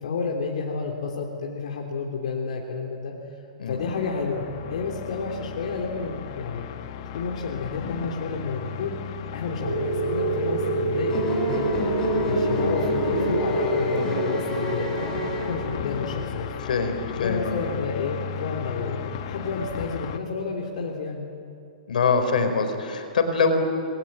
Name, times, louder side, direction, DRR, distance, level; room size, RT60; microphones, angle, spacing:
voice 1, 0.0-3.2 3.7-6.6 7.1-9.0 9.3-11.9 12.3-16.5 17.2-21.3, left 4 dB, 55° left, -1 dB, 3.4 m, -30 dB
sound 1, 3.7-20.2, left 7 dB, 35° left, 1.2 m, -35 dB
sound 2, 9.6-17.9, right 2 dB, 70° right, 7.8 m, -27 dB
sound 3, 11.1-16.0, left 1 dB, 15° left, 4.3 m, -31 dB
voice 2, 16.6-17.6 21.9-23.6, left 4 dB, 75° left, 7 dB, 4.6 m, -24 dB
26.5 x 21.5 x 9.5 m, 2.5 s
hypercardioid pair, 175°, 4 cm